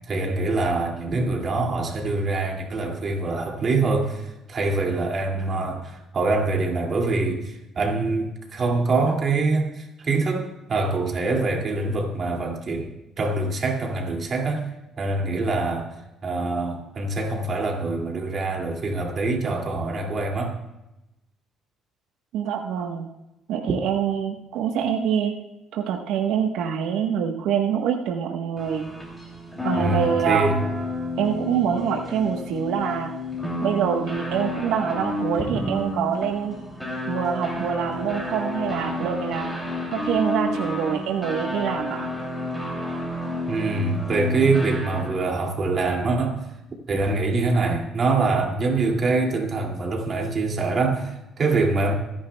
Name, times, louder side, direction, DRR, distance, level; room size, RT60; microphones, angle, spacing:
voice 1, 0.1-14.6 15.0-15.9 16.2-20.6 29.8-30.6 35.5-35.6 43.5-46.4 46.9-51.9, right 3 dB, 35° right, 1 dB, 2.3 m, -24 dB
voice 2, 22.3-23.1 23.5-25.3 25.7-28.8 29.6-30.5 31.2-33.1 33.6-36.6 37.1-39.5 39.9-42.1, right 8 dB, 80° right, 3 dB, 1.1 m, -25 dB
sound 1, 28.6-45.3, left 1 dB, 5° left, 2.8 m, -31 dB
25.0 x 10.0 x 2.2 m, 0.94 s
cardioid pair, 145°, 0 cm